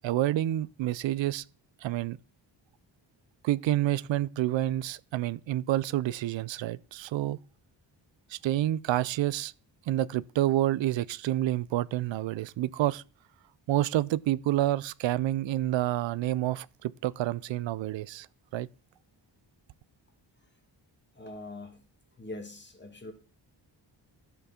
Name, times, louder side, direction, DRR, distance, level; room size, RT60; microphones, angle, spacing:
voice 1, 0.0-1.4 1.8-2.2 3.4-7.4 8.3-9.5 9.9-13.0 13.7-18.3 18.5-18.7, right 14 dB, 90° right, 0.5 m, -28 dB
voice 2, 21.1-21.8 22.2-23.1, left 2 dB, 25° left, 2.2 m, -42 dB
13.5 x 5.8 x 4.3 m
cardioid pair, 100°, 44 cm